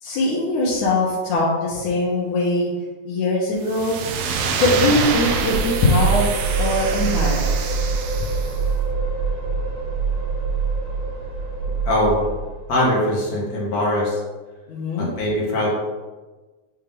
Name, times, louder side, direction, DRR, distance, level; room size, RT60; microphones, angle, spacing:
voice 1, 0.0-2.7 3.1-4.0 4.6-6.3 6.6-7.5 14.7-15.1, left 2 dB, 85° left, -7 dB, 2.5 m, -21 dB
sound 1, 3.6-8.6, right 6 dB, 75° right, 1.5 m, -26 dB
sound 2, 5.0-12.8, right 4 dB, 50° right, 2.1 m, -25 dB
voice 2, 11.8-12.3 12.7-14.2 15.0-15.8, left 1 dB, 40° left, -4 dB, 1.5 m, -21 dB
8.9 x 3.4 x 3.7 m, 1.2 s
omnidirectional pair, 3.4 m